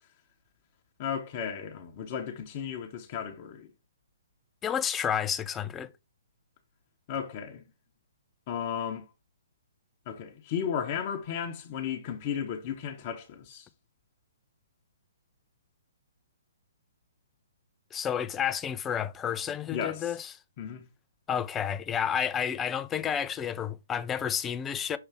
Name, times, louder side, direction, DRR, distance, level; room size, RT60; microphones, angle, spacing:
voice 1, 1.0-3.7 7.1-7.6 8.5-9.1 10.1-13.7 19.7-20.1 20.6-20.8, left 8 dB, 35° left, 1.0 m, -34 dB
voice 2, 4.6-5.9 17.9-20.3 21.3-25.0, left 8 dB, 15° left, 0.5 m, -30 dB
6.8 x 3.2 x 4.6 m
figure-of-eight pair, 125°, 0 cm